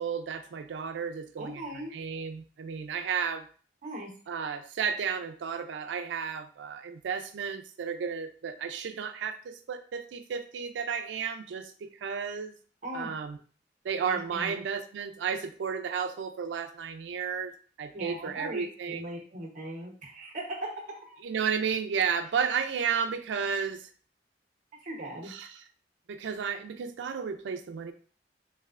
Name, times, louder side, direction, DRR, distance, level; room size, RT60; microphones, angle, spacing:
voice 1, 0.0-1.6 1.9-3.5 4.3-12.5 12.9-13.4 13.8-19.1 21.2-23.9 25.3-25.5 26.1-27.9, right 6 dB, 90° right, 9 dB, 0.4 m, -33 dB
voice 2, 1.4-2.0 3.8-4.1 12.8-13.1 14.0-14.5 17.9-21.2 24.8-25.3, right 1 dB, 45° right, -2 dB, 0.8 m, -39 dB
3.2 x 2.6 x 2.4 m, 0.43 s
head